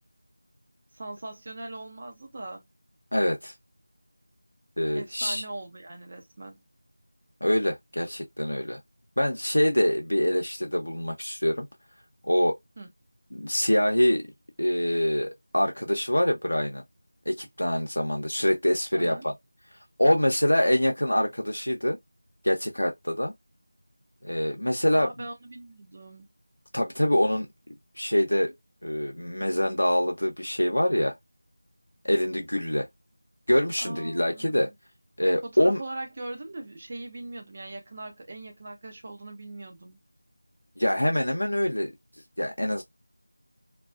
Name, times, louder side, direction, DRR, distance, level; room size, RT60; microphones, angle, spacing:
voice 1, 0.9-2.7 4.9-6.6 12.8-12.9 18.9-19.3 24.9-26.2 33.8-34.7 35.4-40.0, right 2 dB, 35° right, 0.6 m, -40 dB
voice 2, 3.1-3.5 4.8-5.4 7.4-8.8 9.2-11.7 12.3-12.6 13.3-14.3 14.6-16.8 17.3-19.3 20.0-22.0 22.4-23.3 24.2-25.1 26.7-28.5 28.8-31.1 32.0-32.9 33.5-34.7 35.2-35.8 40.8-41.9 42.4-42.8, left 1 dB, 90° left, 0.6 m, -25 dB
2.3 x 2.2 x 2.4 m
figure-of-eight pair, 170°, 0 cm